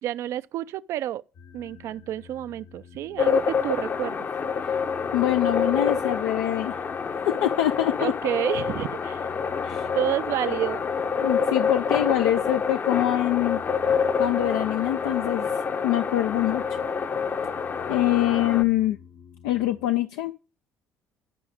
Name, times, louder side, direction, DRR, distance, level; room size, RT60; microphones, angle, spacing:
voice 1, 0.0-1.2 1.5-4.3 8.0-9.3 9.9-10.9, right 12 dB, 65° right, 0.4 m, -29 dB
sound 1, 1.3-20.0, left 7 dB, 70° left, 2.6 m, -49 dB
sound 2, 3.2-18.6, left 6 dB, 45° left, 0.7 m, -27 dB
voice 2, 5.1-6.8 7.3-8.1 9.6-9.9 10.4-10.6 11.2-13.6 14.2-15.5 15.8-16.8 17.9-19.0 19.4-20.3, left 14 dB, 85° left, 0.4 m, -24 dB
12.0 x 4.9 x 3.4 m
supercardioid pair, 70°, 5 cm